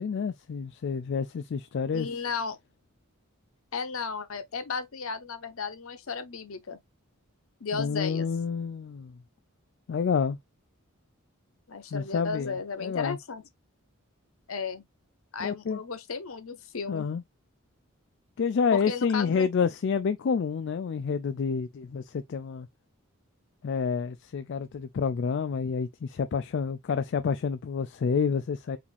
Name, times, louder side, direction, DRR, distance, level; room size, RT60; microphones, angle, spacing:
voice 1, 0.0-2.1 7.7-9.2 9.9-10.4 11.9-12.6 12.8-13.2 15.4-15.8 16.9-17.2 18.4-22.7 23.6-28.8, left 6 dB, 55° left, 0.3 m, -28 dB
voice 2, 1.9-2.6 3.7-6.8 7.6-8.3 11.7-13.4 14.5-14.8 15.3-17.1 18.7-19.5, left 5 dB, 70° left, 0.8 m, -34 dB
4.9 x 2.6 x 3.3 m
head